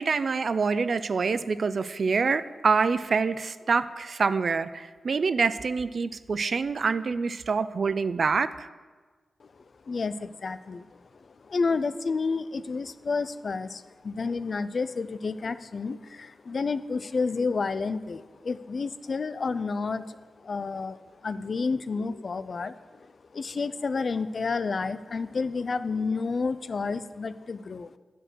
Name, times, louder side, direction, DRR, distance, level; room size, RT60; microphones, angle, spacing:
voice 1, 0.0-8.7, right 4 dB, 55° right, 14 dB, 0.3 m, -26 dB
voice 2, 9.4-27.9, left 4 dB, 50° left, 14 dB, 0.3 m, -30 dB
9.9 x 4.6 x 6.2 m, 1.4 s
cardioid pair, 90°, 0 cm